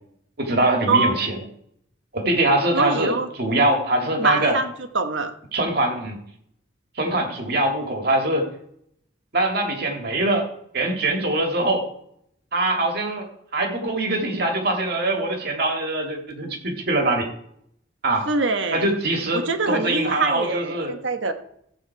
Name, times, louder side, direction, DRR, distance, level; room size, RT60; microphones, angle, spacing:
voice 1, 0.4-1.4 2.1-4.6 5.5-6.2 7.0-8.5 9.3-10.5 10.7-11.9 12.5-17.3 18.0-18.3 18.7-20.9, right 1 dB, 50° right, 3 dB, 2.3 m, -23 dB
voice 2, 2.7-3.3 4.2-5.3 18.3-18.9 19.3-21.3, right 3 dB, 70° right, 8 dB, 1.2 m, -24 dB
14.5 x 8.1 x 4.7 m, 0.70 s
head